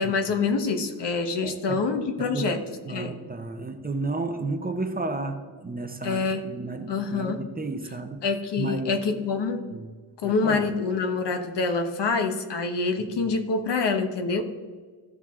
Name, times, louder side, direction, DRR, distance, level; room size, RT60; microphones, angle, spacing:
voice 1, 0.0-2.6 2.9-3.1 6.0-6.4 6.9-7.4 8.2-9.6 10.2-14.4, left 4 dB, 70° left, 6 dB, 1.1 m, -26 dB
voice 2, 1.4-2.6 2.9-8.2 8.6-8.9 9.7-9.9 10.2-10.6 13.2-13.3, right 3 dB, 20° right, 6 dB, 0.7 m, -33 dB
15.0 x 6.0 x 3.6 m, 1.5 s
wide cardioid pair, 145°, 42 cm